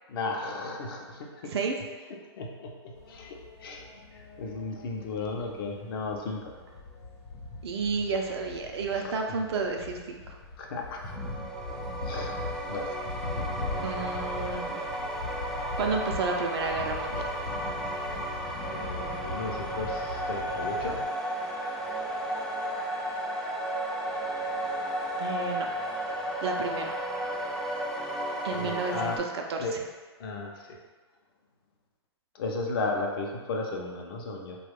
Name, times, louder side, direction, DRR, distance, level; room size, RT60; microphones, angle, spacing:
voice 1, 0.1-1.5 2.4-3.8 4.1-6.5 9.0-9.2 10.6-11.0 12.1-12.3 12.6-12.9 18.7-21.0 28.5-29.2 29.6-29.8 30.2-30.8 32.3-34.6, left 3 dB, 55° left, 0 dB, 0.6 m, -35 dB
sound 1, 2.9-21.0, left 3 dB, 85° left, 0.9 m, -40 dB
voice 2, 7.6-10.4 13.8-14.8 15.8-17.3 25.2-25.7 26.4-26.9 28.4-29.8, right 4 dB, 70° right, 2 dB, 0.5 m, -31 dB
sound 2, 11.0-29.2, right 1 dB, 5° left, 0.4 m, -33 dB
3.0 x 2.3 x 3.4 m, 1.3 s
hypercardioid pair, 145°, 14 cm